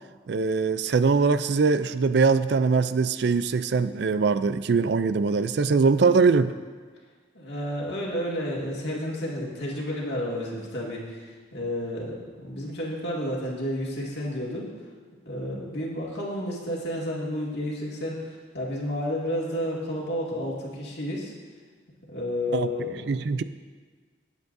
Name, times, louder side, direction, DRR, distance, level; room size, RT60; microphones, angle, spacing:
voice 1, 0.3-6.5 22.5-22.7 23.1-23.4, right 4 dB, 60° right, 13 dB, 0.4 m, -22 dB
voice 2, 7.3-14.7 15.3-21.3 22.1-23.2, left 1 dB, 60° left, -4 dB, 2.2 m, -31 dB
19.5 x 8.2 x 2.7 m, 1.5 s
head